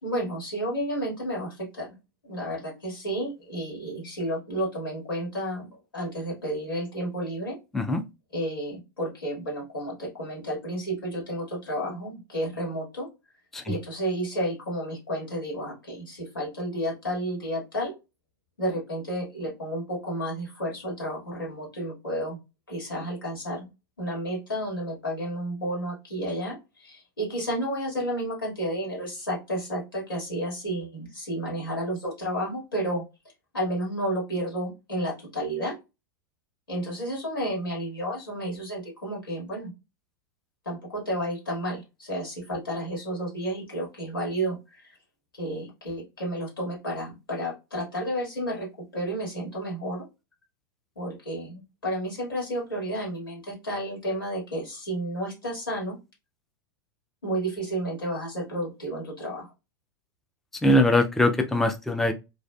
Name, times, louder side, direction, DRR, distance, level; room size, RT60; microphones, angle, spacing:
voice 1, 0.0-1.9 2.2-7.6 8.3-13.1 13.6-17.9 18.6-22.4 22.7-23.7 24.0-33.0 33.5-35.7 36.7-39.7 40.6-45.0 45.4-50.0 50.9-56.0 57.2-59.5, right 1 dB, 85° left, -1 dB, 1.8 m, -31 dB
voice 2, 60.6-62.1, left 1 dB, 5° left, 5 dB, 0.3 m, -22 dB
3.1 x 2.5 x 2.2 m, 0.25 s
figure-of-eight pair, 95°, 11 cm